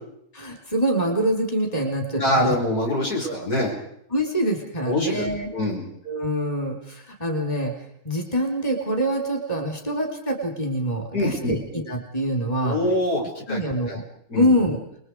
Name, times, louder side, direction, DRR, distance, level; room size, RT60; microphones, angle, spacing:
voice 1, 0.3-2.5 3.2-3.4 4.1-5.5 6.1-7.7 8.0-12.8 13.5-14.0 14.3-14.8, equal, 25° left, 2 dB, 3.9 m, -25 dB
voice 2, 2.1-3.8 4.9-5.3 5.5-5.9 11.1-11.6 12.6-13.6 13.9-14.0 14.3-14.5, left 1 dB, 85° left, -1 dB, 5.9 m, -24 dB
28.5 x 21.5 x 4.8 m, 0.73 s
omnidirectional pair, 1.6 m